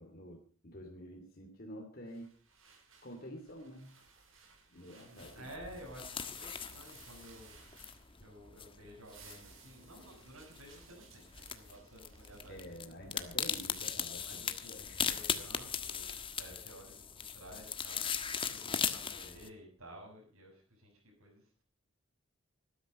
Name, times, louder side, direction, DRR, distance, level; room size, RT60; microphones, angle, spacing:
voice 1, 0.0-2.4 3.0-3.9 4.7-5.5 12.5-15.1, equal, 45° left, 2 dB, 2.8 m, -49 dB
sound 1, 2.1-8.5 8.8-13.5, right 5 dB, 65° right, 5.7 m, -61 dB
voice 2, 4.9-7.6 8.2-12.8 13.2-13.4 14.2-18.2 18.5-21.6, equal, 85° right, -3 dB, 7.2 m, -53 dB
sound 2, 5.2-19.5, left 7 dB, 25° left, 1.4 m, -39 dB
20.0 x 12.5 x 5.5 m, 0.41 s
head